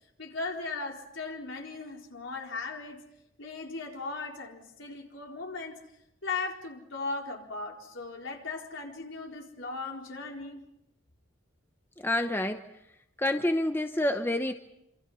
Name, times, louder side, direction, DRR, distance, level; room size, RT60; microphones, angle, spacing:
voice 1, 0.2-3.0 3.4-5.8 6.2-10.7, left 3 dB, 70° left, 1 dB, 4.3 m, -37 dB
voice 2, 12.0-12.6 13.2-14.5, left 1 dB, 10° left, 7 dB, 0.9 m, -28 dB
27.5 x 27.0 x 5.6 m, 0.82 s
head